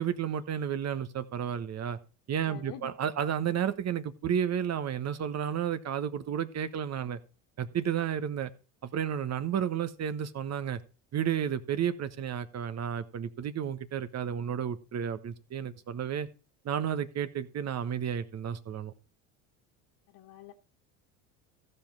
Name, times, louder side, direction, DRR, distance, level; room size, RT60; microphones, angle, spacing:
voice 1, 0.0-2.0 2.3-7.2 7.6-8.5 8.8-10.8 11.1-16.3 16.6-18.9, right 8 dB, 40° right, 1.2 m, -32 dB
voice 2, 2.5-2.9 20.1-20.6, left 10 dB, 55° left, 1.6 m, -47 dB
14.5 x 5.5 x 6.0 m
hypercardioid pair, 85°, 42 cm